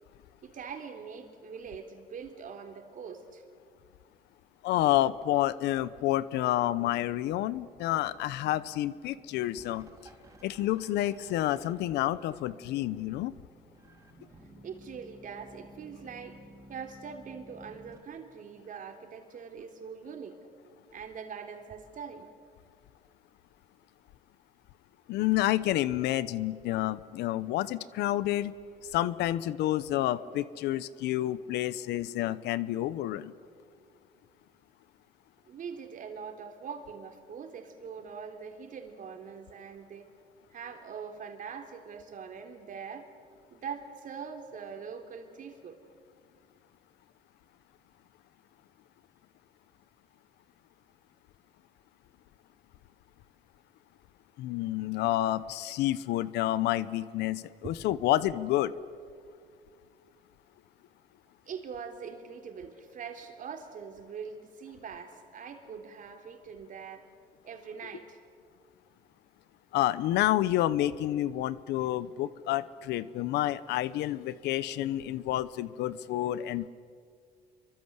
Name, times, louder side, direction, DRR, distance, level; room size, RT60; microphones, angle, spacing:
voice 1, 0.4-3.4 14.6-16.4 16.7-20.4 20.9-22.3 35.5-40.1 40.5-43.1 43.5-45.8 57.6-57.8 61.5-67.1 67.4-68.2, right 6 dB, 50° right, 5 dB, 3.5 m, -43 dB
voice 2, 4.6-9.9 10.4-13.3 25.1-28.5 28.9-33.3 54.4-58.7 69.7-76.7, left 14 dB, 85° left, 16 dB, 0.9 m, -29 dB
sound 1, 6.8-18.0, right 1 dB, 20° right, 5.5 m, -55 dB
27.5 x 24.0 x 8.2 m, 2.2 s
cardioid pair, 110°, 17 cm